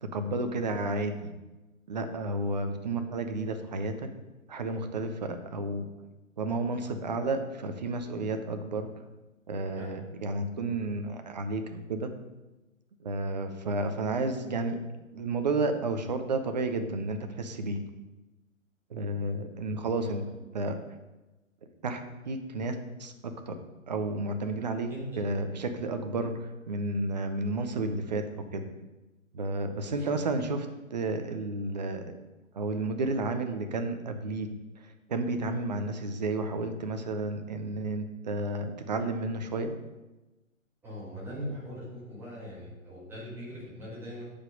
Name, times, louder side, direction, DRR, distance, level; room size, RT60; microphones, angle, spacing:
voice 1, 0.0-1.3 1.9-4.1 4.5-5.9 6.4-8.9 9.5-12.1 13.0-14.8 15.1-17.8 18.9-20.2 20.5-20.8 21.8-23.6 23.9-24.9 25.2-28.2 28.5-28.6 29.3-32.0 32.5-34.5 34.8-39.7, right 2 dB, 30° right, 7 dB, 0.6 m, -32 dB
voice 2, 20.0-20.3 24.9-25.2 29.9-30.2 40.8-44.2, equal, 5° right, -8 dB, 1.6 m, -41 dB
7.3 x 5.2 x 5.0 m, 1.1 s
figure-of-eight pair, 130°, 41 cm